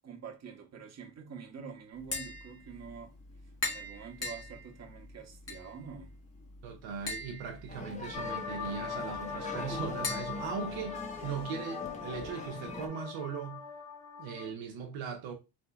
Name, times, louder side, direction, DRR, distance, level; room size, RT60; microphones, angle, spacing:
voice 1, 0.0-3.1 3.7-6.1, right 6 dB, 35° right, 1.2 m, -46 dB
Tap, 1.9-11.4, left 3 dB, 30° left, 1.7 m, -43 dB
voice 2, 6.6-13.6 14.2-15.3, right 6 dB, 70° right, 0.9 m, -39 dB
sound 1, 7.7-12.9, left 3 dB, 15° left, 0.7 m, -43 dB
sound 2, 8.1-14.5, left 6 dB, 75° left, 1.6 m, -41 dB
4.1 x 2.7 x 2.3 m
supercardioid pair, 65°, 47 cm